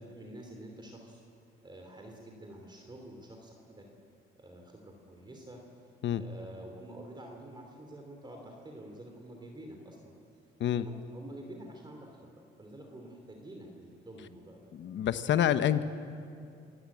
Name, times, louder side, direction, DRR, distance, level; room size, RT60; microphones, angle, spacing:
voice 1, 0.1-1.2 1.6-3.9 4.3-5.6 6.1-10.1 10.7-14.7 15.5-15.8, right 1 dB, 20° right, 2 dB, 3.2 m, -48 dB
voice 2, 14.7-15.8, left 10 dB, 65° left, 12 dB, 1.1 m, -27 dB
27.5 x 15.0 x 8.8 m, 2.5 s
cardioid pair, 90°, 20 cm